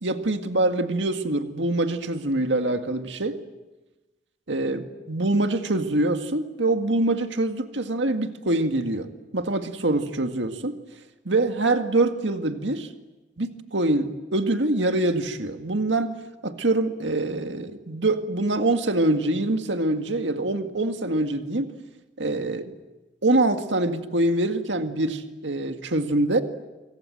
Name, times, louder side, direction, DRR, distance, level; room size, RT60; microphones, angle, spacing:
voice 1, 0.0-3.4 4.5-9.1 9.3-10.8 11.3-12.9 13.4-16.1 16.4-21.8 22.2-22.7 23.2-26.4, right 2 dB, 80° right, 6 dB, 2.0 m, -24 dB
28.5 x 26.5 x 7.8 m, 1.1 s
head